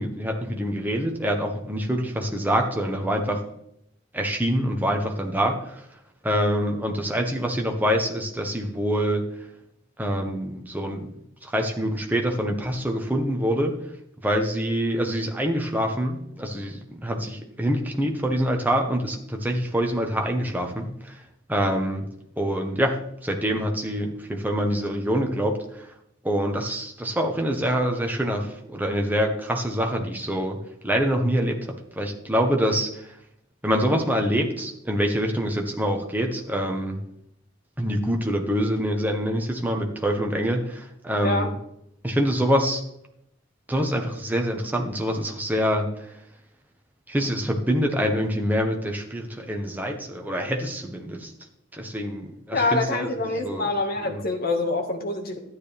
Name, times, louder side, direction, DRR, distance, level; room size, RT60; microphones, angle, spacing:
voice 1, 0.0-3.4 4.1-5.8 6.2-9.3 10.0-11.1 11.4-13.8 14.2-21.2 21.5-22.0 22.4-25.9 26.2-31.7 32.0-33.1 33.6-37.0 37.8-41.5 42.0-42.8 43.7-46.1 47.1-51.3 51.7-53.7 54.0-54.2, equal, 10° right, 2 dB, 1.3 m, -25 dB
voice 2, 52.5-55.4, left 2 dB, 50° left, 3 dB, 1.8 m, -25 dB
13.0 x 9.3 x 3.5 m, 0.76 s
head